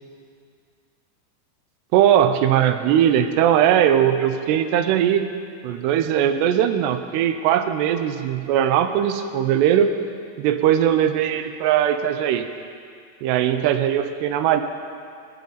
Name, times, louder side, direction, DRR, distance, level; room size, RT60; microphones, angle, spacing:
voice 1, 1.9-5.3 5.6-9.9 10.4-12.5 13.2-14.6, right 10 dB, 85° right, 8 dB, 2.8 m, -19 dB
22.0 x 11.5 x 3.9 m, 2.2 s
omnidirectional pair, 4.8 m